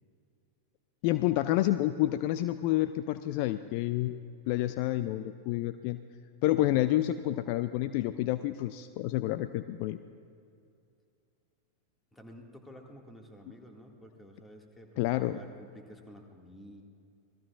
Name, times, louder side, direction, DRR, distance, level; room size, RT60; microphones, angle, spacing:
voice 1, 1.0-4.2 4.5-6.0 6.4-10.0 15.0-15.4, left 15 dB, 45° left, 12 dB, 0.4 m, -29 dB
voice 2, 12.1-16.8, equal, 10° left, 2 dB, 2.0 m, -51 dB
27.0 x 19.5 x 2.5 m, 2.5 s
figure-of-eight pair, 90°, 0 cm